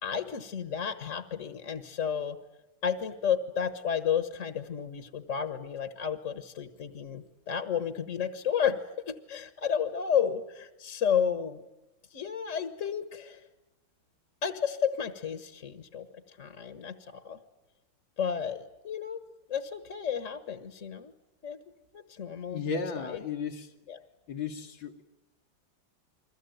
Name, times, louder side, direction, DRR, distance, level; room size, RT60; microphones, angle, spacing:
voice 1, 0.0-2.4 2.8-11.6 12.1-13.5 14.4-17.4 18.2-19.2 19.5-21.1 21.4-21.6 21.9-22.6 23.0-23.2 23.9-24.0, left 7 dB, 45° left, 10 dB, 1.5 m, -32 dB
voice 2, 22.5-23.7 24.3-25.0, left 5 dB, 80° left, 0 dB, 2.3 m, -34 dB
29.5 x 22.0 x 9.2 m, 0.94 s
omnidirectional pair, 2.1 m